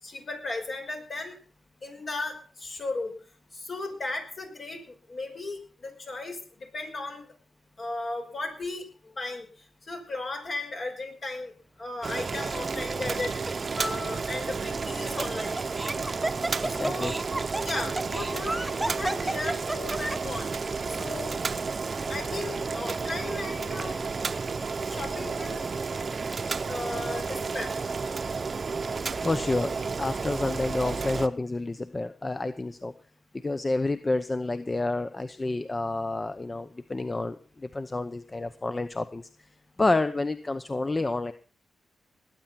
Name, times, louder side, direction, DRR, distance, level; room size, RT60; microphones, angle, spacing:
voice 1, 0.0-1.4 1.8-3.1 3.5-7.3 7.8-9.5 9.8-13.4 13.8-15.6 16.6-17.2 17.6-20.5 20.9-21.3 22.1-24.0 24.8-25.6 26.7-27.7, left 2 dB, 50° left, 4 dB, 5.7 m, -36 dB
Boiling, 12.0-31.3, right 4 dB, 45° right, 0.8 m, -32 dB
Laughter, 12.4-12.8 13.5-13.6 14.8-20.4, right 1 dB, 10° right, 1.1 m, -33 dB
voice 2, 16.6-17.1 29.2-29.7 30.0-32.9 33.4-37.4 37.6-39.3 39.8-41.3, left 2 dB, 25° left, 11 dB, 0.8 m, -29 dB
20.0 x 9.0 x 5.9 m, 0.41 s
cardioid pair, 80°, 0 cm